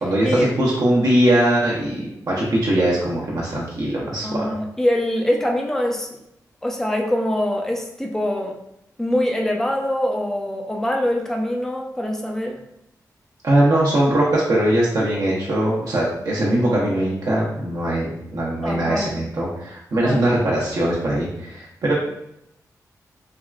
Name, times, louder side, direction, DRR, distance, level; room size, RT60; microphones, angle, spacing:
voice 1, 0.0-4.4 13.4-21.9, right 1 dB, 60° right, -5 dB, 0.7 m, -21 dB
voice 2, 4.2-6.1 6.6-8.6 9.0-12.6 18.6-19.2 19.9-20.3, left 1 dB, 5° left, 1 dB, 0.5 m, -23 dB
3.5 x 2.2 x 2.2 m, 0.79 s
cardioid pair, 65°, 7 cm